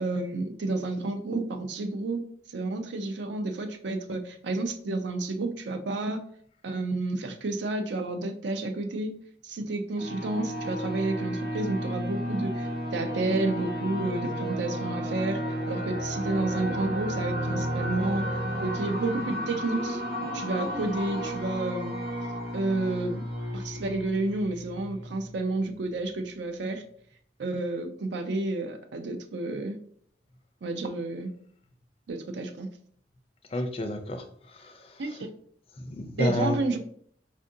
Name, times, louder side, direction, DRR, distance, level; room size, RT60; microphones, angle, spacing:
voice 1, 0.0-6.2 6.6-9.1 9.4-15.4 15.7-18.3 18.6-20.0 20.3-21.9 22.5-23.2 23.5-26.8 27.4-29.8 30.6-31.3 32.1-32.7 35.0-35.3 36.2-36.8, right 2 dB, 75° right, 7 dB, 0.5 m, -30 dB
sound 1, 10.0-25.3, equal, 55° right, 0.8 m, -33 dB
voice 2, 33.5-35.2 35.7-36.6, left 1 dB, 30° left, 6 dB, 0.4 m, -31 dB
4.3 x 2.5 x 2.6 m, 0.62 s
head